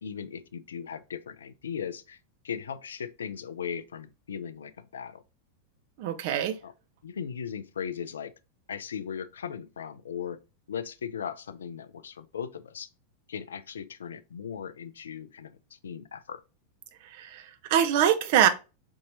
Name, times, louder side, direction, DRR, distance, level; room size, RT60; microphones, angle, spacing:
voice 1, 0.0-2.2 2.4-5.2 6.6-6.7 7.0-8.3 8.7-10.4 10.7-12.9 13.3-16.4, left 7 dB, 65° left, 0.3 m, -38 dB
voice 2, 6.0-6.6 17.0-18.5, right 10 dB, 50° right, 0.5 m, -24 dB
5.1 x 2.7 x 2.6 m
figure-of-eight pair, 90°, 0 cm